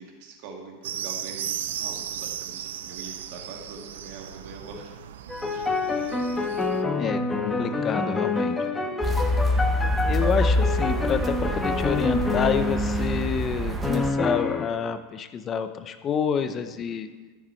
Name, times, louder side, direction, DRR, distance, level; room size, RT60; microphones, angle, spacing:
voice 1, 0.0-4.9 5.5-5.7 7.6-8.1 16.4-17.0, right 4 dB, 60° right, 1 dB, 2.1 m, -43 dB
sound 1, 0.8-6.8, right 10 dB, 85° right, 0.5 m, -36 dB
sound 2, 5.3-13.3 13.8-14.7, left 3 dB, 10° left, 1.2 m, -27 dB
voice 2, 7.0-8.6 10.0-17.1, left 7 dB, 30° left, 10 dB, 0.7 m, -28 dB
sound 3, 9.0-14.1, equal, 20° right, 1.1 m, -26 dB
13.0 x 7.0 x 4.5 m, 1.2 s
supercardioid pair, 120°, 0 cm